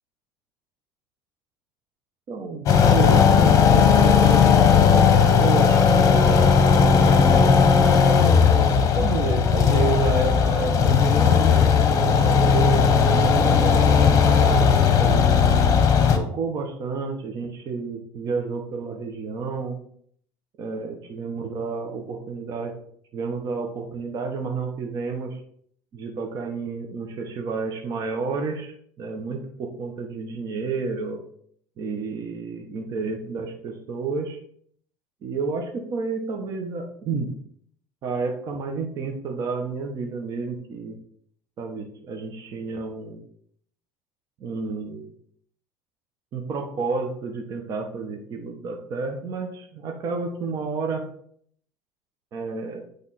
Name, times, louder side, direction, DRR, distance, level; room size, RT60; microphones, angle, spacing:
voice 1, 2.3-7.6 8.9-15.4 16.1-19.8 20.6-22.7 23.1-25.4 25.9-31.2 31.8-34.4 35.2-37.3 38.0-41.0 41.6-43.2 44.4-45.1 46.3-51.0 52.3-52.8, right 4 dB, 50° right, 3 dB, 1.0 m, -30 dB
sound 1, 2.7-16.2, left 6 dB, 40° left, 0.9 m, -17 dB
8.4 x 3.4 x 4.2 m, 0.64 s
cardioid pair, 120°, 8 cm